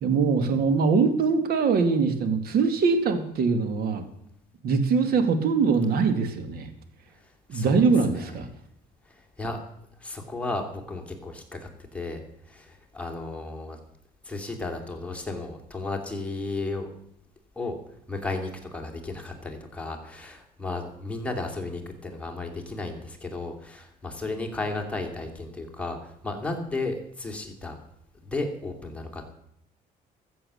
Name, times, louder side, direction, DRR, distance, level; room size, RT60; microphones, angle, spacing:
voice 1, 0.0-4.0 4.6-6.7 7.5-8.5, right 5 dB, 65° right, 9 dB, 2.1 m, -22 dB
voice 2, 7.2-7.8 8.1-8.3 9.1-9.6 10.0-12.2 12.5-13.8 14.2-16.9 17.6-17.8 18.1-27.8 28.2-29.3, left 2 dB, 5° left, 2 dB, 2.9 m, -34 dB
14.0 x 7.8 x 7.0 m, 0.74 s
cardioid pair, 110°, 17 cm